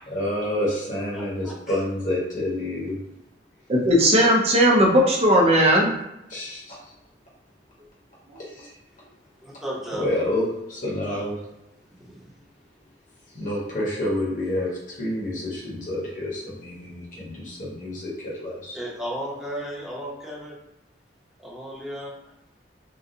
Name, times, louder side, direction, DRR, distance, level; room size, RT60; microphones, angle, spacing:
voice 1, 0.1-3.0 6.3-6.9 8.4-8.7 9.9-11.4 13.3-18.8, left 1 dB, 45° left, -6 dB, 1.3 m, -28 dB
voice 2, 1.1-1.8 9.4-10.0 12.0-12.3 18.7-20.5 21.4-22.1, right 1 dB, 5° right, -6 dB, 0.8 m, -34 dB
voice 3, 3.7-5.9, equal, 35° right, -1 dB, 0.7 m, -17 dB
3.7 x 2.3 x 2.7 m, 0.89 s
head